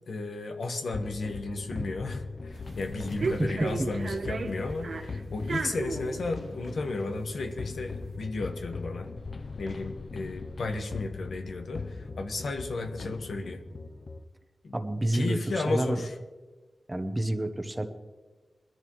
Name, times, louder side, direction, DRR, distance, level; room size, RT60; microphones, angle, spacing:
voice 1, 0.1-9.1 9.6-13.6 14.6-14.8 15.1-16.1, left 3 dB, 80° left, 5 dB, 1.2 m, -33 dB
sound 1, 0.9-14.2, left 4 dB, 50° left, 0.6 m, -40 dB
sound 2, 2.5-8.1, right 4 dB, 65° right, 1.2 m, -35 dB
voice 2, 3.4-3.9 14.7-16.0 16.9-17.9, right 1 dB, 15° right, 8 dB, 0.9 m, -29 dB
21.5 x 13.5 x 3.1 m, 1.3 s
wide cardioid pair, 125°, 0 cm